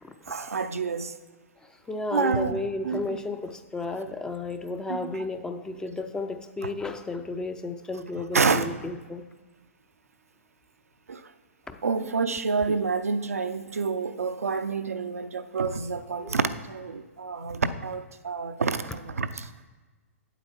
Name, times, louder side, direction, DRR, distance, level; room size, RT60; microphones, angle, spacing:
voice 1, 0.3-1.1 2.1-2.6 2.8-3.2 4.9-5.2 8.3-8.7 11.1-11.3 11.8-19.5, right 4 dB, 85° right, 0.6 m, -28 dB
voice 2, 1.6-9.3 11.7-12.2 12.7-12.8 16.2-16.4, left 2 dB, 10° left, 0.5 m, -33 dB
8.6 x 8.0 x 4.4 m
hypercardioid pair, 120°, 8 cm